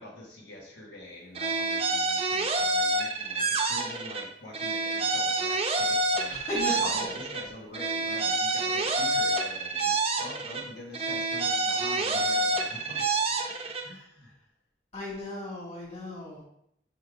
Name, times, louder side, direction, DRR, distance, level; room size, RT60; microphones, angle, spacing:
voice 1, 0.0-13.5 13.8-14.3, left 1 dB, 85° left, -3 dB, 1.5 m, -45 dB
sound 1, 1.3-4.3 4.5-7.5 7.7-10.7 10.9-13.9, right 2 dB, 35° right, 0.7 m, -28 dB
voice 2, 6.3-6.8 14.9-16.4, left 1 dB, 40° left, -4 dB, 2.4 m, -35 dB
5.2 x 4.5 x 4.8 m, 0.75 s
head